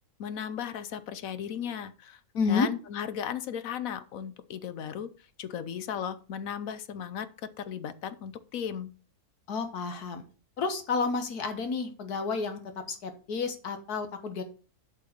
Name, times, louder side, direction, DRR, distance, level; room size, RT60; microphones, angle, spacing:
voice 1, 0.2-2.2 2.5-5.1 5.4-7.3 7.6-8.9, left 8 dB, 70° left, 13 dB, 1.1 m, -36 dB
voice 2, 2.3-2.7 9.5-10.2 10.6-12.6 12.9-14.4, left 4 dB, 90° left, 8 dB, 1.9 m, -30 dB
7.8 x 5.6 x 6.5 m, 0.38 s
omnidirectional pair, 1.6 m